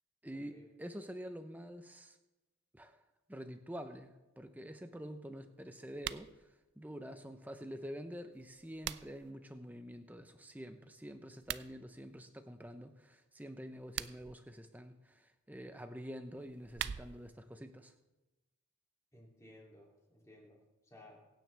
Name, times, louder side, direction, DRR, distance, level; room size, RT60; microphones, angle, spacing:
voice 1, 0.2-2.2 2.7-3.0 3.3-6.3 6.8-17.9, equal, 10° right, 8 dB, 0.8 m, -47 dB
sound 1, 5.9-6.3 8.3-9.3 11.3-11.7 13.7-14.4 16.4-17.3, right 10 dB, 50° right, 0.4 m, -42 dB
voice 2, 19.1-21.2, left 1 dB, 15° left, -3 dB, 3.0 m, -58 dB
23.5 x 9.2 x 3.5 m, 1.1 s
head